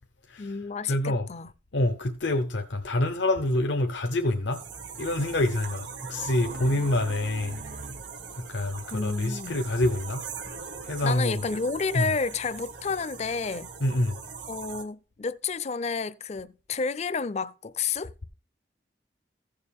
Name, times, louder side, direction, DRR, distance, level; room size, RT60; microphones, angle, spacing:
voice 1, 0.4-1.5 8.9-9.5 11.0-13.7 14.5-18.1, left 5 dB, 35° left, 0.4 m, -30 dB
voice 2, 0.9-1.3 1.7-4.6 5.0-7.6 8.5-10.2 10.8-11.4 11.9-12.1 13.8-14.2, left 1 dB, 85° left, 0.9 m, -26 dB
Race car auto racing, 4.3-8.5, right 1 dB, 40° right, 0.5 m, -45 dB
sound 1, 4.5-14.8, right 5 dB, 80° right, 1.9 m, -41 dB
15.0 x 6.7 x 3.5 m
head